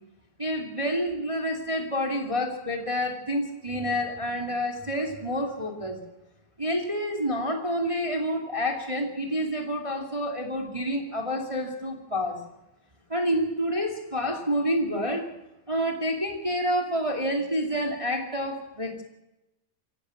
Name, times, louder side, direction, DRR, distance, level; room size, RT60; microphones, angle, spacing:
voice 1, 0.4-6.0 6.6-12.4 13.1-15.3 15.7-19.0, equal, 15° right, 2 dB, 1.1 m, -28 dB
26.0 x 15.5 x 6.4 m, 0.93 s
omnidirectional pair, 5.2 m